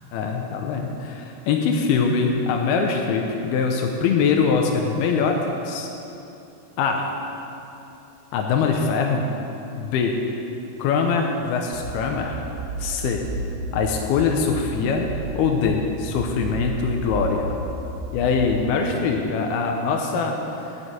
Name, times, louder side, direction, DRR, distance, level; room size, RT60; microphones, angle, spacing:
voice 1, 0.1-5.4 5.7-5.9 6.8-7.1 8.3-9.3 9.8-10.2 10.8-12.4 12.8-13.2 13.7-15.1 15.4-17.5 18.1-20.4, left 5 dB, 80° left, 2 dB, 2.5 m, -23 dB
sound 1, 11.7-19.3, right 2 dB, 75° right, 3.3 m, -33 dB
9.9 x 7.2 x 8.9 m, 2.8 s
omnidirectional pair, 4.9 m